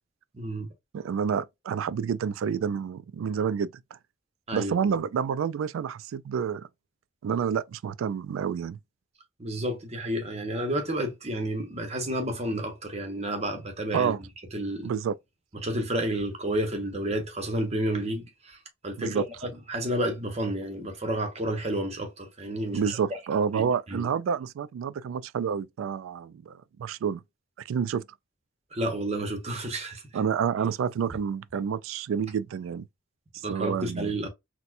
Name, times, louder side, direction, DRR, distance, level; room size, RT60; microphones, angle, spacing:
voice 1, 0.3-0.7 4.5-4.7 9.4-14.1 14.5-14.9 15.6-18.6 18.8-23.0 23.5-24.1 28.7-30.0 33.4-34.3, right 1 dB, 35° right, 1.0 m, -30 dB
voice 2, 0.9-3.7 4.5-6.7 7.2-8.8 13.9-14.2 14.8-15.2 19.0-19.3 22.7-27.2 27.7-28.0 30.1-32.9 33.3-34.1, right 7 dB, 90° right, 0.3 m, -29 dB
4.2 x 2.2 x 2.5 m
head